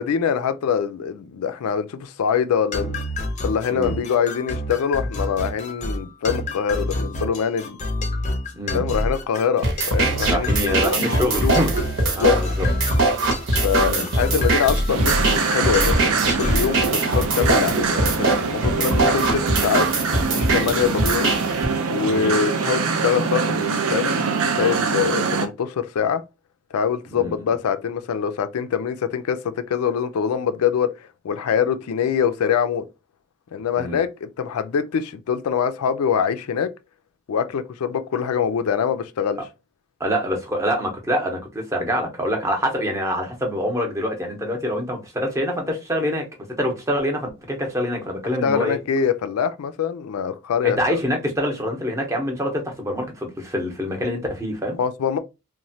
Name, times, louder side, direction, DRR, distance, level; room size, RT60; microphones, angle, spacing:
voice 1, 0.0-3.0 3.4-7.8 8.7-11.6 12.1-12.4 13.6-19.9 20.3-21.3 21.9-26.2 26.7-30.9 31.2-32.8 33.5-36.7 37.3-39.4 48.2-51.0 54.8-55.2, left 7 dB, 85° left, 0.4 m, -24 dB
sound 1, 2.7-16.8, left 1 dB, 35° left, 0.5 m, -28 dB
sound 2, 9.6-21.6, right 2 dB, 55° right, 0.8 m, -22 dB
voice 2, 10.3-11.7 12.2-12.7 13.8-14.0 20.7-20.9 22.1-22.3 27.2-27.3 33.8-34.0 40.0-46.2 46.6-48.8 50.6-54.8, equal, 15° right, 0.6 m, -25 dB
sound 3, 14.9-25.5, right 5 dB, 75° right, 0.5 m, -24 dB
3.0 x 2.1 x 2.7 m
head